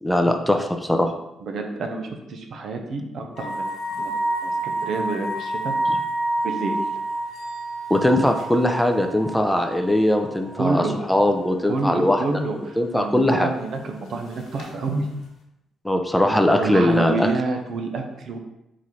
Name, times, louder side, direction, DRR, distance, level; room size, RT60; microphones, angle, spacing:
voice 1, 0.0-1.1 5.9-6.0 7.9-12.2 12.8-13.5 15.8-17.3, left 1 dB, 5° left, 5 dB, 0.5 m, -20 dB
voice 2, 1.4-3.7 3.9-5.8 6.4-6.8 10.6-10.9 11.7-15.1 16.5-18.4, right 3 dB, 60° right, 4 dB, 0.7 m, -28 dB
sound 1, 3.4-11.1 11.3-11.4 14.6-14.7, right 2 dB, 75° left, 1.1 m, -28 dB
4.2 x 3.9 x 3.1 m, 0.88 s
cardioid pair, 90°, 0 cm